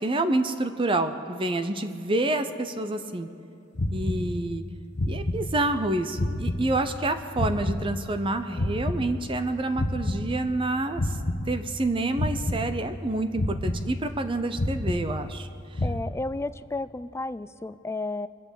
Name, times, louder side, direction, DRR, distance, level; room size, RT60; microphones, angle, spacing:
voice 1, 0.0-3.3 3.9-4.6 5.1-11.2 11.5-15.5, right 2 dB, 25° right, 9 dB, 0.6 m, -28 dB
sound 1, 3.7-4.7 4.9-5.9 6.1-8.3 8.5-10.7 10.9-11.9 12.1-13.1 13.3-14.3 14.5-15.5 15.7-16.0, left 1 dB, 60° left, 1.0 m, -30 dB
voice 2, 15.8-18.3, left 2 dB, 15° left, 14 dB, 0.3 m, -32 dB
24.5 x 8.2 x 7.1 m, 2.8 s
head